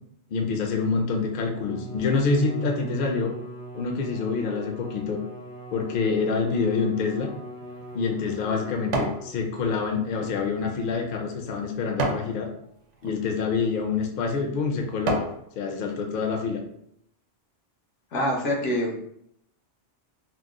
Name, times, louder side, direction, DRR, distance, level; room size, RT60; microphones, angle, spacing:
voice 1, 0.3-3.3 3.7-5.2 5.7-7.3 7.9-12.5 13.0-15.2 15.6-16.6, left 4 dB, 60° left, 2 dB, 0.6 m, -26 dB
Bowed string instrument, 1.4-9.7, right 1 dB, 45° right, 0.5 m, -40 dB
sound 1, 7.4-9.3 9.7-12.3 12.9-13.2 13.9-14.0 14.5-15.4 15.9-16.0, right 2 dB, 75° right, 0.9 m, -32 dB
voice 2, 18.1-19.0, left 1 dB, 80° left, 1 dB, 1.0 m, -25 dB
2.9 x 2.0 x 3.6 m, 0.73 s
omnidirectional pair, 1.2 m